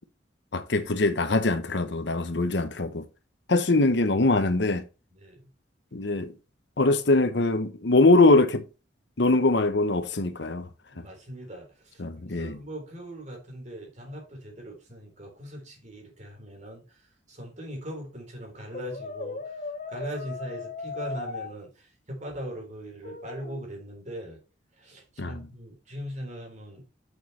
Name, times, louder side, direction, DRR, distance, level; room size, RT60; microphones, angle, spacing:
voice 1, 0.5-3.1 3.5-4.8 5.9-6.3 6.8-8.6 9.2-10.7 12.0-12.6 25.2-25.5, left 2 dB, 70° left, 0.9 m, -22 dB
voice 2, 5.1-5.5 10.9-12.0 12.3-17.0 17.3-19.5 19.9-24.4 24.8-26.9, equal, 40° right, 3.6 m, -40 dB
Brass instrument, 18.7-21.5 23.0-23.6, left 3 dB, 40° left, 0.9 m, -37 dB
7.7 x 6.5 x 3.3 m
head